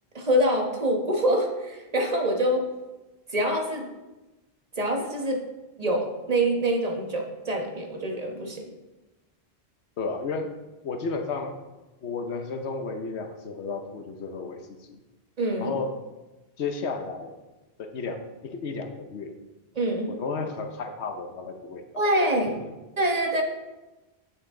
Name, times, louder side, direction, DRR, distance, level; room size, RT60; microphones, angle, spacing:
voice 1, 0.1-2.7 3.3-3.9 4.8-5.4 5.8-8.6 15.4-15.7 19.7-20.2 22.0-22.6 23.0-23.4, right 1 dB, 35° right, 1 dB, 1.3 m, -25 dB
voice 2, 10.0-10.5 10.8-11.6 12.0-15.0 15.6-16.0 16.6-17.3 17.8-19.3 20.2-22.0 22.6-22.7, left 4 dB, 80° left, 6 dB, 1.1 m, -33 dB
9.0 x 7.3 x 3.7 m, 1.1 s
omnidirectional pair, 1.1 m